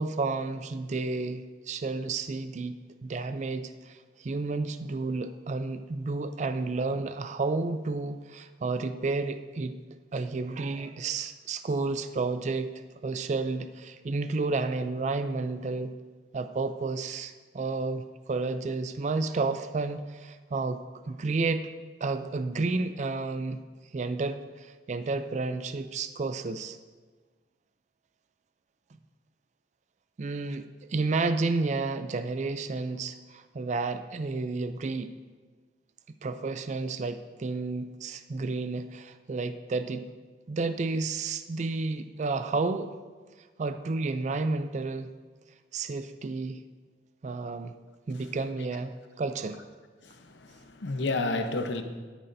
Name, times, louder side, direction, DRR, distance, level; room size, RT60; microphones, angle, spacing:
voice 1, 0.0-9.8 10.1-12.7 13.0-15.9 16.3-21.7 22.0-23.6 23.9-26.8 30.2-35.1 36.2-40.1 40.5-43.0 43.6-45.1 45.7-46.6 47.2-47.7 48.1-49.6, right 3 dB, 40° right, 11 dB, 0.4 m, -31 dB
voice 2, 50.0-51.8, left 2 dB, 90° left, 7 dB, 0.8 m, -31 dB
12.5 x 10.5 x 2.6 m, 1.4 s
head